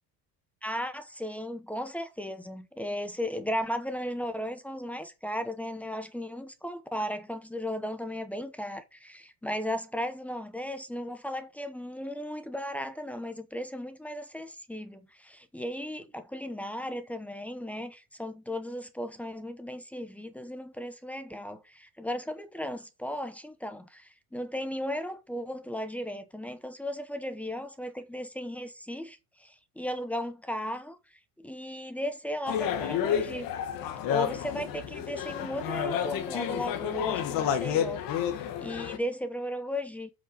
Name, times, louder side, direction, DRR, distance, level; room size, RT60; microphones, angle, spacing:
voice 1, 0.6-31.0 31.4-33.5 34.1-40.1, equal, 5° left, 0.9 m, -36 dB
sound 1, 32.5-39.0, left 9 dB, 60° left, 1.7 m, -30 dB
8.2 x 6.1 x 7.7 m
cardioid pair, 175°, 38 cm